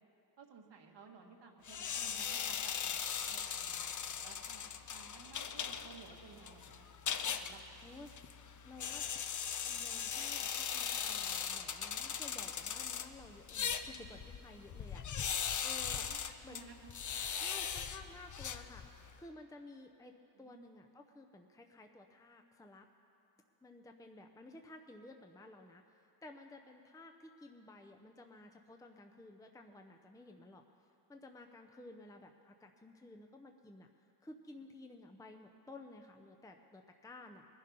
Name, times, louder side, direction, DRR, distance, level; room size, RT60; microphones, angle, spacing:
voice 1, 0.4-7.0 7.4-7.8 15.9-16.9 20.4-20.7, right 5 dB, 85° right, 1 dB, 1.6 m, -57 dB
sound 1, 1.6-19.2, left 7 dB, 45° left, 0.6 m, -40 dB
voice 2, 7.8-8.1 8.6-9.0 9.7-15.3 15.6-16.1 16.4-16.7 17.4-18.8 19.1-22.9 23.6-30.6 31.1-37.5, left 2 dB, 10° left, 4 dB, 0.6 m, -54 dB
20.0 x 11.0 x 5.4 m, 2.9 s
wide cardioid pair, 105°, 42 cm